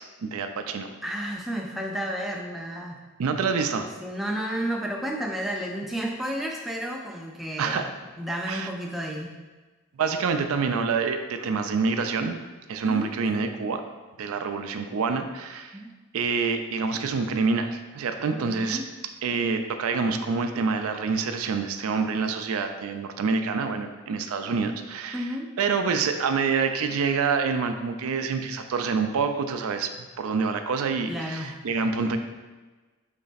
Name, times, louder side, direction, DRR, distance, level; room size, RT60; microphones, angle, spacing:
voice 1, 0.0-0.9 3.2-3.9 7.6-7.8 8.5-8.7 10.0-12.4 12.7-13.8 14.2-15.8 16.1-18.8 19.2-25.3 25.6-32.2, right 5 dB, 80° right, 7 dB, 0.4 m, -27 dB
voice 2, 1.0-3.0 3.8-7.9 8.2-9.3 12.8-13.1 15.7-15.9 18.4-18.9 25.1-25.5 31.1-31.5, equal, ahead, -1 dB, 0.3 m, -32 dB
4.0 x 3.3 x 4.0 m, 1.3 s
head